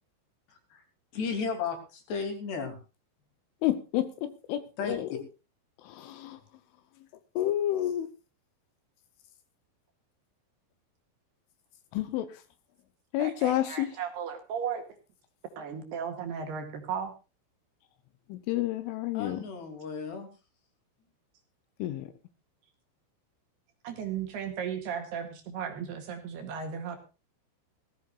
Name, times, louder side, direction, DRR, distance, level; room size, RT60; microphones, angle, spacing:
voice 1, 1.1-2.8 4.8-5.0 19.1-20.3, left 5 dB, 55° left, 6 dB, 4.9 m, -34 dB
voice 2, 3.6-5.1 5.8-6.4 7.4-8.1 11.9-12.4 13.1-14.0 18.3-19.4 21.8-22.1, left 13 dB, 75° left, 12 dB, 3.2 m, -30 dB
voice 3, 13.2-14.8 15.6-17.1 23.8-27.0, right 7 dB, 60° right, 5 dB, 3.5 m, -35 dB
19.0 x 15.5 x 2.5 m, 0.31 s
omnidirectional pair, 6.0 m